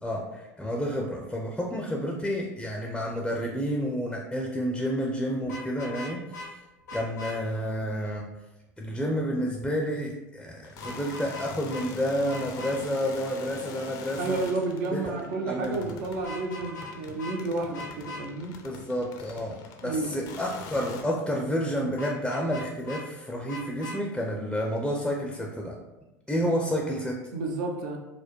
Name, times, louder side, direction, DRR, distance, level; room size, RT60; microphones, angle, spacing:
voice 1, 0.0-6.5 6.9-8.3 8.8-14.4 14.9-15.0 15.5-16.0 18.6-25.7 26.3-27.2, equal, 5° left, 0 dB, 0.5 m, -30 dB
Vehicle horn car horn honking, 5.4-6.5 6.9-7.4 10.8-11.4 11.7-11.8 12.3-12.7 16.1-16.9 17.2-17.4 17.7-18.2 22.0-23.0 23.5-24.0, left 2 dB, 85° left, 1.0 m, -39 dB
sound 1, 10.6-21.0, left 5 dB, 55° left, 0.5 m, -44 dB
voice 2, 14.2-18.6 19.8-20.3 27.3-28.0, right 3 dB, 70° right, 1 dB, 0.7 m, -31 dB
4.1 x 2.2 x 3.0 m, 1.0 s
hypercardioid pair, 80°, 9 cm